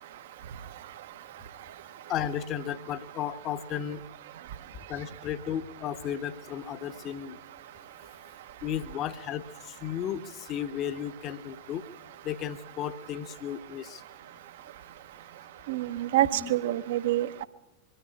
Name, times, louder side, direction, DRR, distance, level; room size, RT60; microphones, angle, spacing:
voice 1, 2.1-4.0 4.9-7.4 8.6-11.8 12.2-14.0 16.2-16.5, left 9 dB, 35° left, 14 dB, 1.0 m, -34 dB
voice 2, 15.7-17.4, right 14 dB, 55° right, 14 dB, 1.0 m, -27 dB
23.0 x 13.5 x 9.8 m, 0.96 s
figure-of-eight pair, 90°, 0 cm